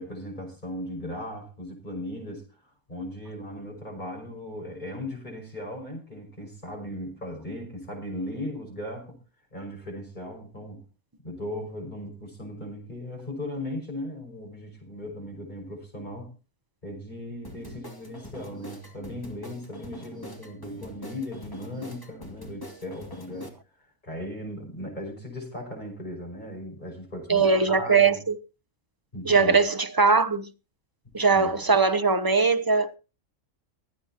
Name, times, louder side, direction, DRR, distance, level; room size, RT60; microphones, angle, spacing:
voice 1, 0.0-9.2 9.5-10.8 11.2-16.3 16.8-23.5 24.0-28.2 29.1-29.6 31.0-31.5, left 1 dB, 35° left, 6.1 m, -37 dB
sound 1, 17.4-23.5, left 1 dB, 15° left, 2.5 m, -43 dB
voice 2, 27.3-28.3 29.2-30.5 31.1-33.0, right 4 dB, 25° right, 0.6 m, -21 dB
24.0 x 8.9 x 2.9 m
omnidirectional pair, 1.4 m